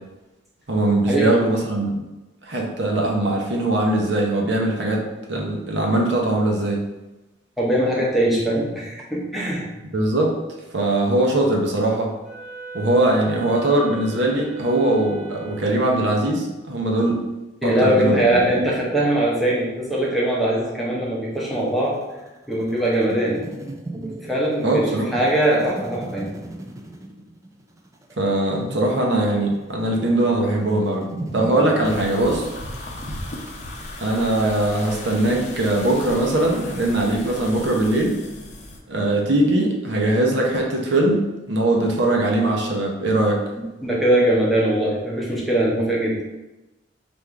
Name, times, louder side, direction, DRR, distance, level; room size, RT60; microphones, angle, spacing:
voice 1, 0.7-2.0 2.5-6.8 9.9-10.3 10.7-12.1 12.7-17.2 17.6-18.2 24.6-25.2 28.2-31.1 31.3-32.5 34.0-38.2 38.9-43.4, right 1 dB, 75° right, 0 dB, 0.8 m, -21 dB
voice 2, 7.6-9.7 17.6-22.0 22.5-23.4 23.9-26.3 43.6-46.2, right 1 dB, ahead, -6 dB, 0.8 m, -21 dB
Wind instrument woodwind instrument, 12.2-16.1, right 5 dB, 35° right, 1.3 m, -39 dB
sound 1, 21.3-32.0, right 1 dB, 15° right, 0.4 m, -37 dB
sound 2, 31.8-38.8, left 1 dB, 40° left, 0.6 m, -36 dB
3.6 x 2.6 x 4.5 m, 1.0 s
head